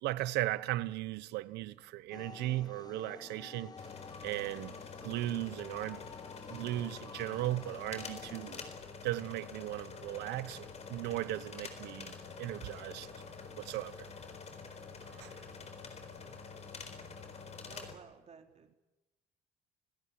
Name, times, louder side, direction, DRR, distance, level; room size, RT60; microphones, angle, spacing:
voice 1, 0.0-3.7 4.2-4.7 5.0-6.0 6.5-8.6 9.0-13.1 13.6-13.9 15.1-15.4, right 15 dB, 85° right, 1.0 m, -37 dB
sound 1, 2.1-8.8, left 5 dB, 25° left, 0.9 m, -51 dB
sound 2, 3.8-18.0, left 5 dB, 40° left, 4.3 m, -47 dB
voice 2, 17.7-18.8, right 6 dB, 40° right, 3.7 m, -55 dB
28.5 x 17.0 x 8.7 m
cardioid pair, 110°, 17 cm